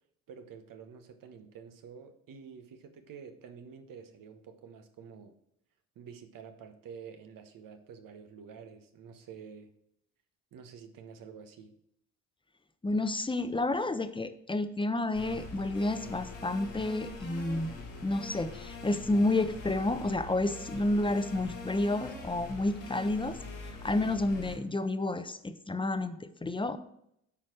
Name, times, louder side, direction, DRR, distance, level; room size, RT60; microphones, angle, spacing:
voice 1, 0.3-5.3 5.9-9.7 10.5-11.7, right 6 dB, 65° right, 7 dB, 1.3 m, -49 dB
voice 2, 12.8-17.7 18.0-23.4 23.8-26.8, left 2 dB, 15° left, 10 dB, 0.9 m, -30 dB
sound 1, 15.1-24.5, left 3 dB, 80° left, 3.2 m, -43 dB
8.7 x 5.0 x 6.0 m, 0.74 s
hypercardioid pair, 55°, 36 cm